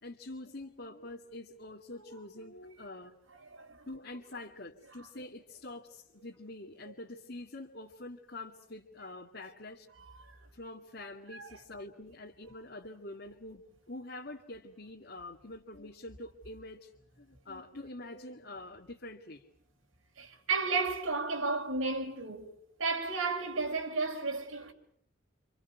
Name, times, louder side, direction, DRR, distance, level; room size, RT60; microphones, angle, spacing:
voice 1, 0.0-3.2 3.9-9.9 10.5-16.9 17.2-19.4, left 2 dB, 55° left, 2.1 m, -46 dB
voice 2, 3.4-3.9 9.9-10.4 11.3-11.8 20.2-22.5 22.8-24.7, right 3 dB, 85° right, 4.7 m, -33 dB
29.5 x 28.5 x 5.9 m
head